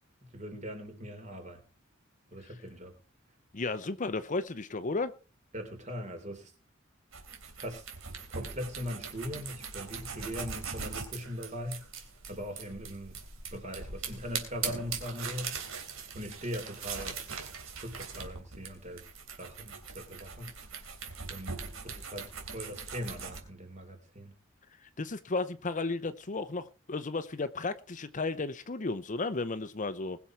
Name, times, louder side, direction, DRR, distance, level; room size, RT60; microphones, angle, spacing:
voice 1, 0.3-1.6 2.3-3.0 5.5-6.5 7.6-7.9 8.3-11.8 12.3-13.2 13.5-15.6 16.1-17.2 17.8-19.1 19.4-20.5 21.3-24.3, equal, 35° right, 3.8 m, -40 dB
voice 2, 3.5-5.1 25.0-30.2, left 3 dB, 40° left, 0.7 m, -34 dB
sound 1, 7.1-23.4, right 5 dB, 90° right, 3.3 m, -41 dB
21.0 x 7.1 x 4.6 m
head